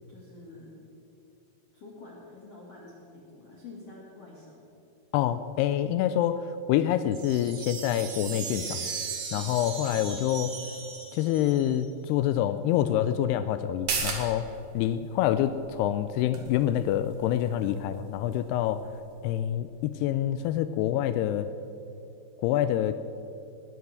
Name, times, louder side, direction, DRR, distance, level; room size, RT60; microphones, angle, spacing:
voice 1, 0.1-0.7 1.7-4.6, left 3 dB, 45° left, -4 dB, 2.3 m, -48 dB
voice 2, 5.1-8.9 9.3-10.5 11.1-14.5 14.7-18.9 19.2-21.5 22.4-22.9, left 11 dB, 90° left, 11 dB, 2.3 m, -26 dB
sound 1, 7.1-11.9, right 6 dB, 75° right, 4.0 m, -38 dB
sound 2, 13.7-20.8 21.2-21.3, right 5 dB, 55° right, 2.9 m, -39 dB
19.0 x 11.0 x 6.4 m, 2.9 s
omnidirectional pair, 5.2 m